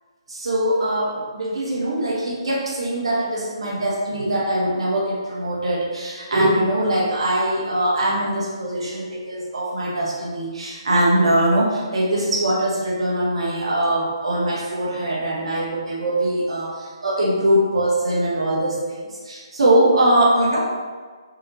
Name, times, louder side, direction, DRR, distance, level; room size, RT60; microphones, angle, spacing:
voice 1, 0.3-20.8, right 1 dB, 75° right, -3 dB, 1.3 m, -22 dB
3.9 x 3.4 x 2.9 m, 1.5 s
hypercardioid pair, 150°, 3 cm